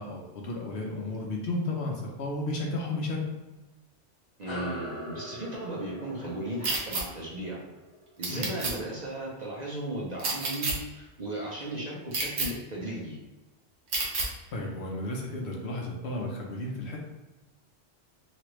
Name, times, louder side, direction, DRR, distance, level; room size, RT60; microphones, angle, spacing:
voice 1, 0.0-3.3 8.3-8.5 14.5-17.0, left 2 dB, 70° left, 0 dB, 0.9 m, -33 dB
voice 2, 4.4-7.6 8.2-13.2, right 1 dB, 45° right, -5 dB, 0.6 m, -36 dB
sound 1, 4.5-9.3, equal, 35° left, 0.5 m, -42 dB
sound 2, 6.6-7.0 8.2-8.7 10.2-10.7 12.1-12.5 13.9-14.3, right 3 dB, 70° right, 1.0 m, -29 dB
3.0 x 2.5 x 3.0 m, 1.1 s
omnidirectional pair, 1.2 m